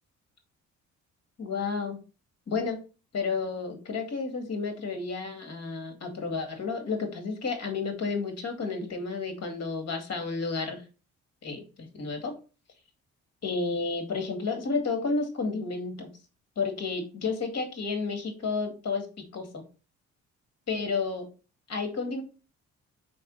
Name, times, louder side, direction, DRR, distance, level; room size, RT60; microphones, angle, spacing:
voice 1, 1.4-2.0 2.5-2.8 3.1-10.8 11.4-12.3 13.4-16.1 16.6-19.1 19.3-19.6 20.7-21.3 21.7-22.2, left 4 dB, 55° left, 5 dB, 2.3 m, -31 dB
5.3 x 5.0 x 4.0 m, 0.33 s
cardioid pair, 90°, 30 cm